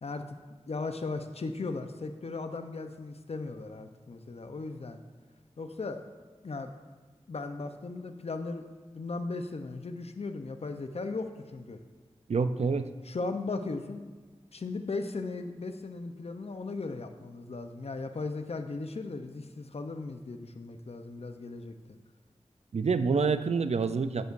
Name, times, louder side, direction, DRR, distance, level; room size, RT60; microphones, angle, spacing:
voice 1, 0.0-5.0 5.6-6.0 6.4-6.7 7.3-11.8 13.0-14.0 14.5-22.0, left 3 dB, 60° left, 7 dB, 0.6 m, -37 dB
voice 2, 12.3-12.9 22.7-24.3, right 5 dB, 65° right, 12 dB, 0.4 m, -27 dB
11.0 x 8.2 x 2.6 m, 1.4 s
wide cardioid pair, 60°, 12 cm